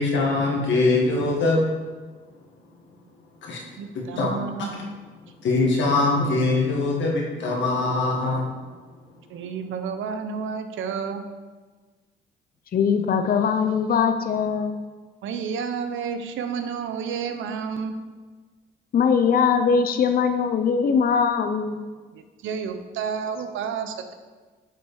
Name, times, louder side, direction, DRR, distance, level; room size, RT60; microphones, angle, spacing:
voice 1, 0.0-1.6 3.4-3.6 4.1-4.3 5.4-8.5, left 3 dB, 70° left, -1 dB, 1.9 m, -22 dB
voice 2, 3.8-4.8 9.3-11.3 15.2-18.0 22.1-24.1, right 6 dB, 80° right, 8 dB, 0.8 m, -30 dB
voice 3, 12.7-14.8 18.9-21.8, left 6 dB, 45° left, 7 dB, 0.7 m, -21 dB
7.3 x 5.4 x 4.8 m, 1.4 s
cardioid pair, 90°, 20 cm